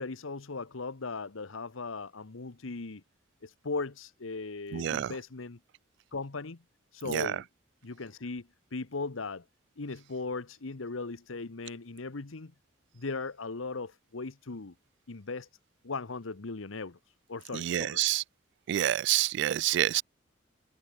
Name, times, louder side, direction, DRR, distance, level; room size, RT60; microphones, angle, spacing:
voice 1, 0.0-3.0 3.4-5.6 6.1-6.6 6.9-7.4 7.8-9.4 9.8-12.5 12.9-14.7 15.1-15.5 15.8-18.1, left 3 dB, 90° left, 1.1 m, -38 dB
voice 2, 4.7-5.2 7.1-7.4 17.5-18.2 18.7-20.0, right 12 dB, 60° right, 0.3 m, -28 dB
head